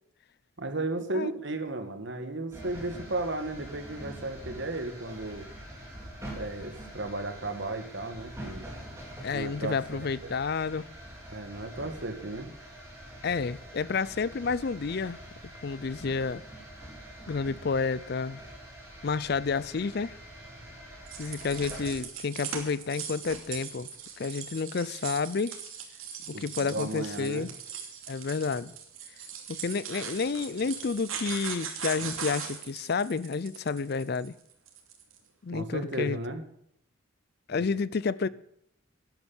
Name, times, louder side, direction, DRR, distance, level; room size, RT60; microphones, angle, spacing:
voice 1, 0.6-5.5 6.3-8.7 9.3-10.3 11.3-12.5 26.3-26.4 26.7-27.5 35.5-36.4 37.6-37.7, right 2 dB, 60° right, 1.7 m, -34 dB
sound 1, 2.5-22.0, right 1 dB, 15° right, 3.9 m, -45 dB
voice 2, 9.2-10.9 13.2-15.2 15.6-16.4 17.3-18.4 19.0-20.1 21.2-23.9 24.2-25.6 26.4-27.5 28.1-28.7 29.5-34.3 35.4-36.2 37.5-38.3, left 4 dB, 50° left, 0.5 m, -30 dB
sound 2, 21.1-35.2, right 7 dB, 85° right, 2.7 m, -40 dB
12.0 x 11.0 x 7.1 m
head